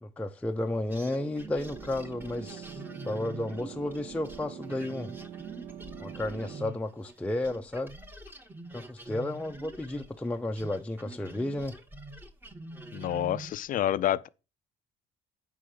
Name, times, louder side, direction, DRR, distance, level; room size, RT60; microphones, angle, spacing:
voice 1, 0.0-5.1 6.0-7.9 8.7-11.8, left 1 dB, 5° left, 0.6 m, -33 dB
sound 1, 0.9-7.2 7.4-13.7, right 2 dB, 10° right, 1.0 m, -45 dB
sound 2, 1.6-6.7, right 9 dB, 50° right, 0.9 m, -44 dB
voice 2, 12.9-14.3, left 12 dB, 55° left, 0.5 m, -28 dB
9.6 x 3.7 x 6.8 m
cardioid pair, 110°, 17 cm